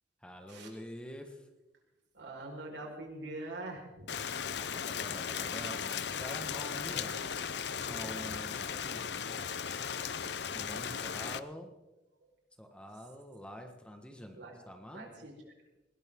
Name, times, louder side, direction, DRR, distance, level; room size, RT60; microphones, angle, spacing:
voice 1, 0.2-1.5 4.6-7.3 7.8-9.5 10.5-11.7 12.6-15.1, equal, 5° left, 4 dB, 1.5 m, -46 dB
voice 2, 2.1-4.3 14.3-14.5 14.9-15.3, right 2 dB, 85° right, 0 dB, 4.9 m, -43 dB
Rain, 4.1-11.4, left 7 dB, 70° left, 0.7 m, -37 dB
20.0 x 18.5 x 3.8 m, 1.0 s
head